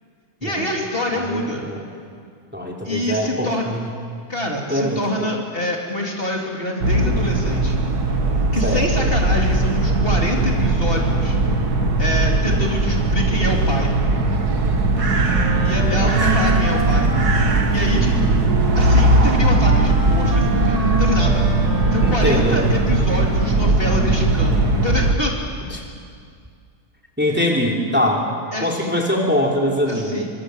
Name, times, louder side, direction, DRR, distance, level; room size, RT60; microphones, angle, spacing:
voice 1, 0.4-1.6 2.8-3.7 4.3-7.8 8.5-11.4 12.0-13.9 15.6-17.1 17.7-18.3 18.8-21.5 21.9-25.4 27.3-27.4 28.5-28.9 29.9-30.3, left 1 dB, 35° left, -1 dB, 3.8 m, -26 dB
voice 2, 1.1-1.9 2.5-3.9 4.7-5.3 8.6-9.1 15.9-16.1 22.0-22.6 25.7-25.8 27.2-28.3 28.6-30.3, left 1 dB, 5° right, -1 dB, 3.4 m, -23 dB
sound 1, 6.8-25.1, right 2 dB, 85° right, 2.4 m, -19 dB
Wind instrument woodwind instrument, 15.3-22.7, right 2 dB, 25° right, 1.5 m, -27 dB
27.5 x 25.5 x 8.3 m, 2.2 s
omnidirectional pair, 1.6 m